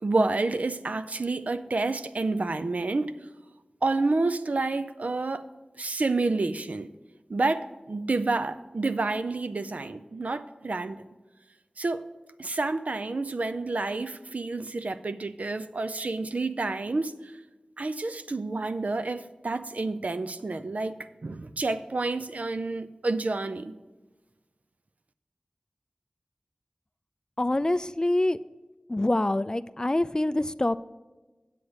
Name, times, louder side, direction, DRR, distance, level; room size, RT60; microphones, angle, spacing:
voice 1, 0.0-3.1 3.8-5.4 5.8-6.9 7.3-11.0 11.8-12.0 12.4-17.1 17.8-23.7, right 3 dB, 70° right, 0.5 m, -29 dB
voice 2, 27.4-28.4 28.9-30.7, left 1 dB, 30° left, 0.3 m, -25 dB
8.4 x 7.9 x 4.9 m
wide cardioid pair, 45°, 3 cm